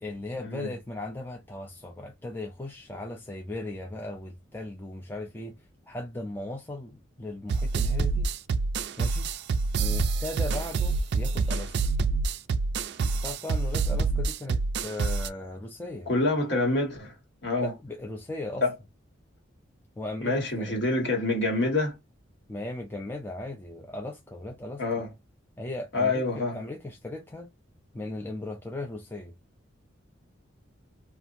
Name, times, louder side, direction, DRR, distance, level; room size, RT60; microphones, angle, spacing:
voice 1, 0.0-5.6 5.8-8.3 9.0-9.3 9.8-11.7 13.0-16.1 17.6-18.6 20.0-20.8 22.5-24.8 25.6-27.5 27.9-29.3, left 2 dB, 10° left, 0.4 m, -37 dB
sound 1, 7.5-15.3, right 4 dB, 55° right, 0.3 m, -27 dB
voice 2, 16.1-17.1 17.4-17.7 18.6-18.7 20.2-22.0 24.8-25.1 25.9-26.6, left 2 dB, 55° left, 1.4 m, -26 dB
2.8 x 2.4 x 2.5 m
head